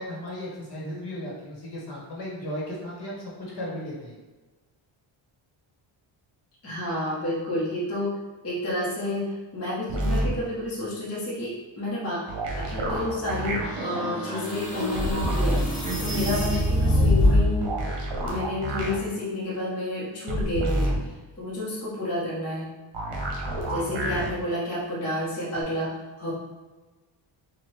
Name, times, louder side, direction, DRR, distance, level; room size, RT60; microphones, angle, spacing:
voice 1, 0.0-4.1 23.8-24.0, equal, 55° left, -5 dB, 1.3 m, -35 dB
voice 2, 6.6-8.2 8.4-9.3 9.5-12.2 12.6-17.7 18.2-21.0 21.4-22.7 23.7-26.3, left 1 dB, 30° left, -8 dB, 1.0 m, -30 dB
sound 1, 9.9-10.3 12.3-13.6 14.9-15.6 17.6-19.0 20.3-21.0 22.9-24.3 25.6-25.7, right 1 dB, 60° right, 1.1 m, -28 dB
Bowed string instrument, 13.2-18.1, right 1 dB, 10° right, 0.8 m, -39 dB
sound 2, 13.6-17.6, left 1 dB, 15° left, 1.4 m, -24 dB
4.5 x 2.5 x 3.2 m, 1.2 s
wide cardioid pair, 150°, 49 cm